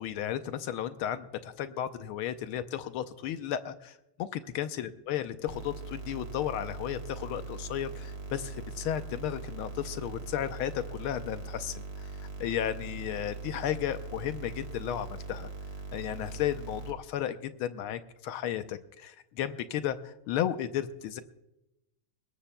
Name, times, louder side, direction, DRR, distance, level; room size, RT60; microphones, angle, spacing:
voice 1, 0.0-12.1 12.4-15.5 15.9-21.2, left 10 dB, 85° left, 10 dB, 1.5 m, -34 dB
sound 1, 5.5-16.9, right 3 dB, 45° right, 2.1 m, -41 dB
21.5 x 18.5 x 2.2 m, 0.89 s
omnidirectional pair, 2.3 m